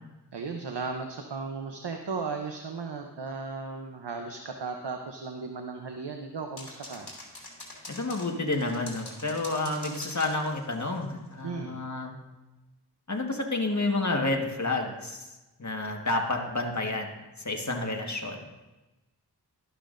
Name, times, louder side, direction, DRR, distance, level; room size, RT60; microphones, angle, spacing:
voice 1, 0.3-7.1 11.4-11.8, right 4 dB, 90° right, 4 dB, 0.8 m, -36 dB
sound 1, 6.6-11.1, left 2 dB, 70° left, 2.9 m, -44 dB
voice 2, 7.9-12.1 13.1-15.3 15.6-17.1 17.4-18.4, left 2 dB, 45° left, 1 dB, 1.5 m, -30 dB
12.5 x 12.0 x 2.6 m, 1.1 s
wide cardioid pair, 45°, 40 cm